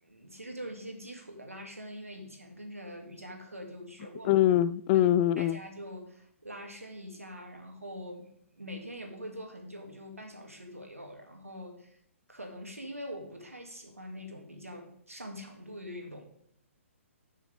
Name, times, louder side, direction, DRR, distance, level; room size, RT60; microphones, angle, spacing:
voice 1, 0.0-4.4 4.9-5.1 5.4-12.0 12.3-16.2, equal, 85° right, 2.3 m, -44 dB
voice 2, 4.2-5.6, left 12 dB, 25° left, 0.3 m, -23 dB
12.5 x 6.4 x 3.7 m
figure-of-eight pair, 125°, 7 cm